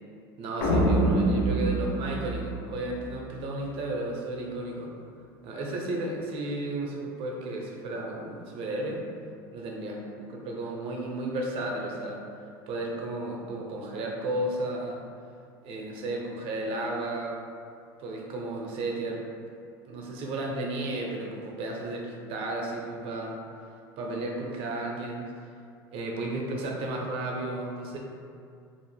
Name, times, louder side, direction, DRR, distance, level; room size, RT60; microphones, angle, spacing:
voice 1, 0.4-4.9 5.4-9.1 9.5-12.2 12.7-15.0 15.6-17.4 18.0-19.3 19.8-23.5 24.0-25.2 25.9-28.0, right 2 dB, 55° right, -1 dB, 0.5 m, -33 dB
sound 1, 0.6-3.1, right 1 dB, 85° left, 0.5 m, -25 dB
2.4 x 2.0 x 3.2 m, 2.4 s
supercardioid pair, 110°, 11 cm